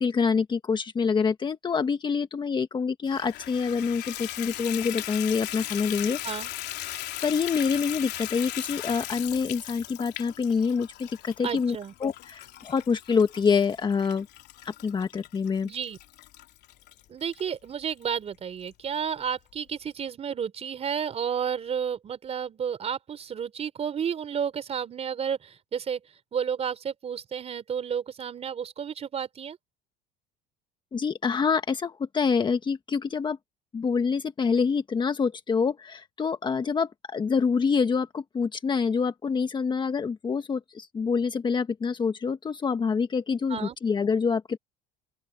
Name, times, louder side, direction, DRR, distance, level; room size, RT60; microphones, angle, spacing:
voice 1, 0.0-6.2 6.9-11.8 12.0-14.3 14.6-15.7 30.9-33.4 33.7-44.6, left 5 dB, 20° left, 1.4 m, -26 dB
Water tap faucet / Bathtub (filling or washing), 3.1-17.4 18.0-18.1 18.6-18.7 19.0-19.1, left 15 dB, 55° left, 3.4 m, -38 dB
voice 2, 11.4-11.9 15.6-16.0 17.1-26.0 26.3-29.6 43.5-43.8, right 7 dB, 30° right, 3.9 m, -31 dB
open air
cardioid pair, 130°, 20 cm